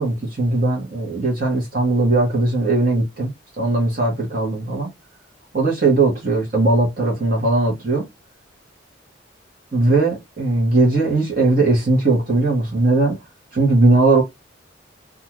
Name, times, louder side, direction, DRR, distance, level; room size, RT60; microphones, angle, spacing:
voice 1, 0.0-3.3 3.6-4.9 5.5-8.1 9.7-13.2 13.5-14.2, right 2 dB, 50° right, 1.0 m, -18 dB
2.6 x 2.3 x 2.9 m
head